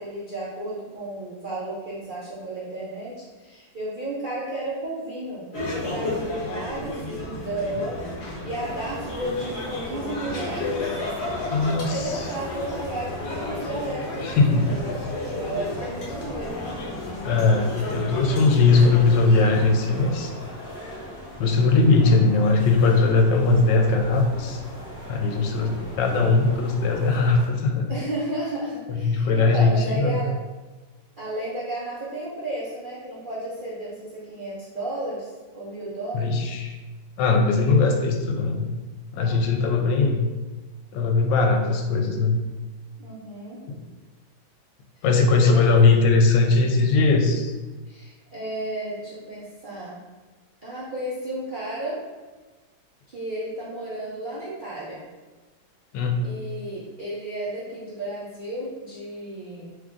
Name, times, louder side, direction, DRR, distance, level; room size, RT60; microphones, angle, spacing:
voice 1, 0.0-8.1 8.4-10.8 11.2-14.7 15.3-16.8 27.9-30.3 31.2-36.3 39.1-39.5 43.0-43.6 45.3-45.6 47.9-50.0 50.6-52.0 53.1-55.0 56.2-59.7, right 1 dB, 55° right, -9 dB, 0.5 m, -33 dB
sound 1, 5.5-19.8, left 2 dB, 50° left, 0.9 m, -32 dB
sound 2, 8.5-27.5, left 1 dB, 30° right, 1.6 m, -40 dB
voice 2, 11.5-12.1 14.2-14.8 17.2-20.3 21.4-24.6 25.1-27.9 28.9-30.2 36.1-36.7 37.2-38.7 39.1-40.3 40.9-42.3 43.7-43.8 45.0-47.5 55.9-56.3, left 3 dB, 80° left, 3 dB, 1.2 m, -20 dB
3.6 x 3.1 x 3.7 m, 1.2 s
omnidirectional pair, 1.9 m